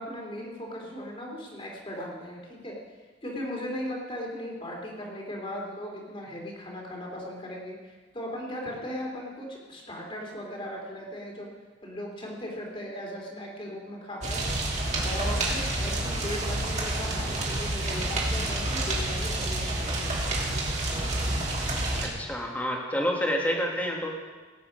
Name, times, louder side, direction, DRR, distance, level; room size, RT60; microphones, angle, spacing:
voice 1, 0.0-2.8 3.2-11.5 11.8-14.4 15.0-20.1, equal, 30° left, -1 dB, 3.1 m, -37 dB
sound 1, 14.2-22.1, right 1 dB, 40° right, 2.6 m, -29 dB
voice 2, 22.0-24.2, equal, 10° left, -1 dB, 1.9 m, -28 dB
18.0 x 8.6 x 5.2 m, 1.4 s
head